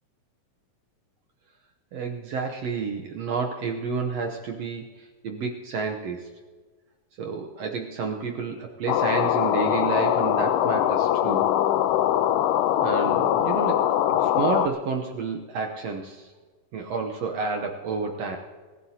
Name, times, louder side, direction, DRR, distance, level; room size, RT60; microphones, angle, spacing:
voice 1, 1.9-6.3 7.2-11.5 12.8-13.8 14.1-16.3 16.7-18.4, right 4 dB, 65° right, 3 dB, 1.7 m, -30 dB
sound 1, 8.9-14.7, left 11 dB, 90° left, 2.3 m, -22 dB
sound 2, 11.2-13.8, left 12 dB, 40° left, 1.9 m, -37 dB
25.5 x 15.5 x 2.8 m, 1.4 s
omnidirectional pair, 3.7 m